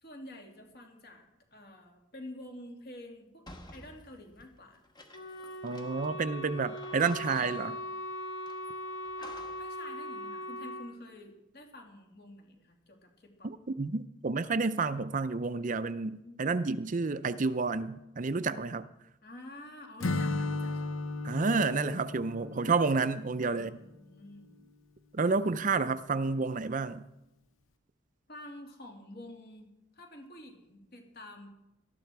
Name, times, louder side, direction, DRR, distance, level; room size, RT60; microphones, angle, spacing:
voice 1, 0.0-3.4 3.7-4.8 9.2-13.5 16.0-16.5 19.2-20.9 23.3-24.5 28.3-31.5, left 1 dB, 50° left, 2 dB, 2.8 m, -49 dB
sound 1, 3.5-6.2 6.4-6.5 6.8-7.9 8.5-9.8, left 2 dB, 20° left, 1.5 m, -52 dB
Wind instrument woodwind instrument, 5.1-10.9, left 1 dB, 65° left, 2.7 m, -40 dB
voice 2, 5.6-7.8 13.4-18.9 21.2-23.7 25.1-27.0, right 4 dB, 40° right, 13 dB, 0.5 m, -30 dB
Acoustic guitar / Strum, 20.0-23.9, left 2 dB, 85° left, 0.9 m, -35 dB
18.5 x 13.5 x 4.7 m, 0.91 s
head